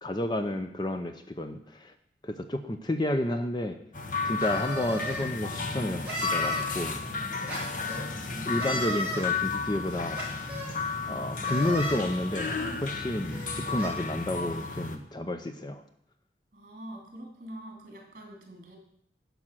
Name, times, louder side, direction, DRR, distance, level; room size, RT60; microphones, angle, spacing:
voice 1, 0.0-1.9 2.2-3.8 4.2-7.0 8.4-10.2 11.1-15.8, left 1 dB, 25° left, 8 dB, 0.5 m, -31 dB
sound 1, 3.9-15.0, left 4 dB, 45° left, 1.0 m, -33 dB
sound 2, 4.4-5.3 6.0-6.7 7.5-8.0 8.6-9.2 10.1-10.7 11.4-12.0 12.8-12.9 13.3-13.9, equal, 10° right, 3.8 m, -35 dB
voice 2, 8.1-8.6 16.5-18.8, right 1 dB, 45° right, 2 dB, 3.0 m, -44 dB
11.0 x 5.3 x 7.5 m, 0.71 s
head